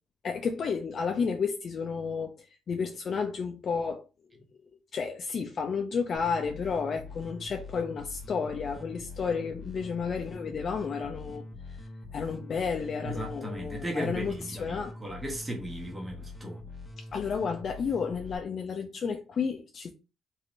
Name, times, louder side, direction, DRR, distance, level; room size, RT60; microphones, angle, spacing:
voice 1, 0.2-4.0 4.9-11.8 12.1-15.0 17.0-19.9, left 5 dB, 50° left, 0.4 m, -32 dB
sound 1, 6.2-18.4, left 3 dB, 10° left, 0.9 m, -44 dB
voice 2, 13.0-16.6, right 1 dB, 15° right, 1.1 m, -36 dB
3.1 x 2.8 x 2.5 m
cardioid pair, 90°, 0 cm